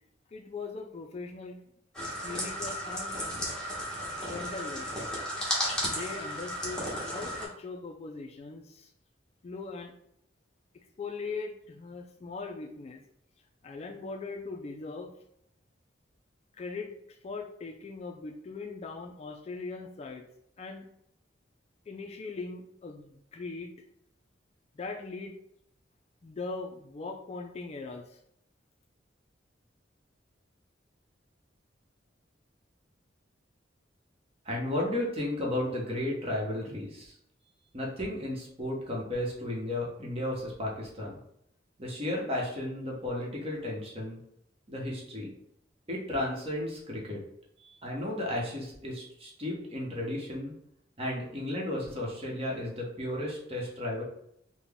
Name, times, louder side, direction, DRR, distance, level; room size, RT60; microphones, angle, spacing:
voice 1, 0.3-1.6 2.2-3.2 4.2-4.9 5.8-8.9 9.4-9.9 11.0-13.0 13.6-15.1 16.6-16.9 17.2-20.2 20.6-20.8 21.9-23.7 24.8-25.3 26.2-28.0, left 3 dB, 35° left, 4 dB, 0.3 m, -40 dB
sound 1, 1.9-7.5, equal, 5° left, 1.0 m, -34 dB
voice 2, 34.4-37.1 37.7-41.2 41.8-44.2 44.7-45.3 45.9-47.2 47.6-50.5 51.0-54.0, left 1 dB, 35° right, -2 dB, 1.0 m, -34 dB
3.9 x 2.1 x 3.4 m, 0.74 s
head